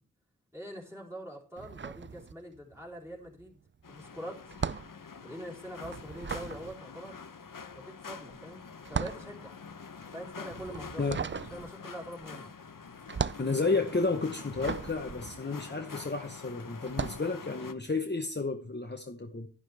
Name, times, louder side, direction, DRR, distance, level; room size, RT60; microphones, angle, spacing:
voice 1, 0.5-3.6 3.9-4.5 5.2-7.2 7.7-9.6 10.1-11.1 11.5-12.5, equal, 10° right, 3.9 m, -44 dB
sound 1, 1.6-2.8 3.1-16.2 16.8-17.3, right 6 dB, 35° right, 0.4 m, -38 dB
sound 2, 3.8-17.7, left 5 dB, 65° left, 0.9 m, -46 dB
voice 2, 13.4-19.5, left 3 dB, 30° left, 1.0 m, -32 dB
11.0 x 11.0 x 3.4 m
wide cardioid pair, 40°, 35 cm